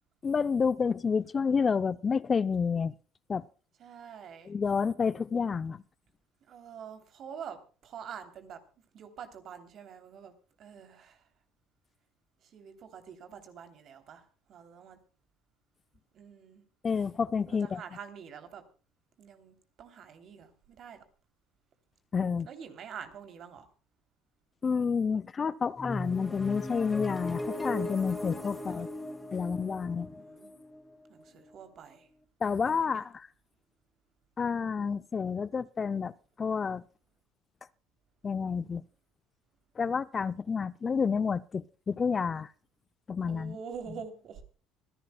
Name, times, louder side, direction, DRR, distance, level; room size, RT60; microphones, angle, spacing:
voice 1, 0.2-2.9 3.3-3.5 4.5-5.8 16.8-17.8 22.1-22.5 24.6-28.9 29.3-30.1 32.4-33.3 34.4-36.1 36.4-36.8 38.2-38.8 39.8-42.5 43.1-43.6, left 5 dB, 30° left, 0.6 m, -29 dB
voice 2, 3.8-4.5 6.5-8.6 8.9-11.3 12.4-15.0 16.1-16.6 17.5-18.6 19.2-21.0 22.4-23.7 28.6-28.9 30.2-30.5 31.1-32.1 32.6-33.0 43.3-44.4, right 7 dB, 55° right, 3.1 m, -46 dB
sound 1, 25.8-31.5, left 1 dB, 15° left, 1.9 m, -38 dB
25.5 x 11.5 x 2.3 m
supercardioid pair, 80°, 0 cm